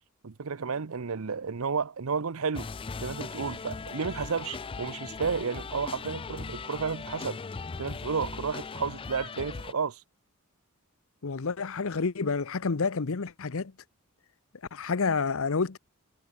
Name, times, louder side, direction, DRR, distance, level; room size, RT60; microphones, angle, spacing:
voice 1, 0.2-2.7 3.0-7.4 7.8-10.0, right 5 dB, 65° right, 0.7 m, -32 dB
sound 1, 2.5-9.7, left 4 dB, 25° left, 0.4 m, -39 dB
voice 2, 11.2-13.7 14.7-15.8, left 4 dB, 65° left, 0.8 m, -29 dB
head